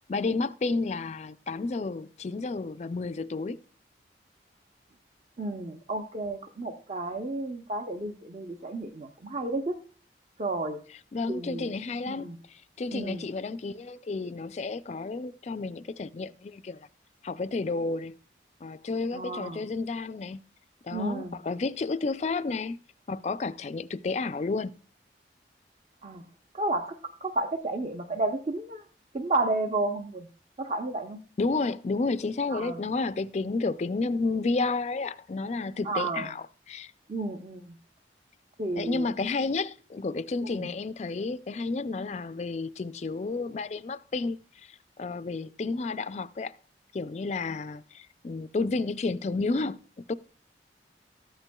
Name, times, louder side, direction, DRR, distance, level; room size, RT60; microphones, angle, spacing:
voice 1, 0.1-3.6 11.1-16.9 17.2-18.2 18.6-20.4 20.8-22.8 23.1-24.7 31.4-36.9 38.8-46.5 46.9-49.8 50.1-50.2, left 3 dB, 40° left, 0.3 m, -31 dB
voice 2, 5.4-9.8 10.4-10.8 11.3-11.7 12.1-12.4 12.9-13.2 19.1-19.6 20.9-21.4 26.0-26.2 26.5-28.8 29.1-30.3 30.6-31.2 32.5-32.8 35.8-36.3 37.1-37.8 38.6-39.1 40.4-40.7, right 2 dB, 35° right, 0.7 m, -32 dB
13.5 x 8.8 x 2.2 m
head